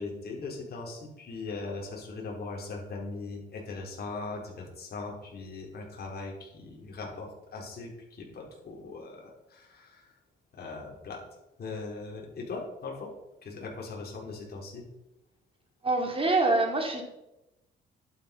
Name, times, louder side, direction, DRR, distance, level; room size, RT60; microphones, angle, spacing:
voice 1, 0.0-10.0 10.5-11.2 11.6-13.1 13.4-14.8, left 3 dB, 55° left, -1 dB, 4.8 m, -39 dB
voice 2, 15.8-17.0, right 2 dB, 30° right, 1 dB, 3.8 m, -25 dB
11.0 x 10.0 x 5.6 m, 0.93 s
cardioid pair, 90°, 20 cm